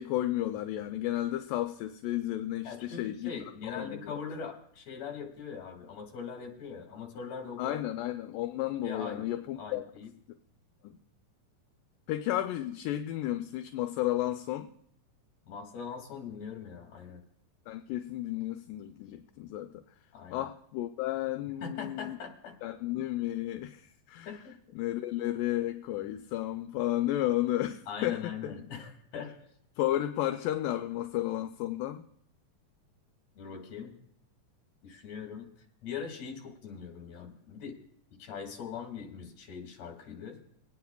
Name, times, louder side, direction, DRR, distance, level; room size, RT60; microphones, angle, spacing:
voice 1, 0.0-3.3 3.6-4.2 7.6-9.8 10.8-11.0 12.1-14.7 17.7-19.8 20.3-22.2 22.6-24.4 24.7-28.5 29.8-32.0, left 14 dB, 80° left, 2.1 m, -33 dB
voice 2, 2.6-7.8 8.8-9.3 9.6-10.1 15.4-17.2 20.1-20.4 21.6-22.5 24.3-24.5 27.9-29.3 33.4-34.0 34.8-35.5 35.8-37.8 38.2-40.4, left 6 dB, 55° left, 2.8 m, -41 dB
25.0 x 9.5 x 2.3 m
omnidirectional pair, 4.0 m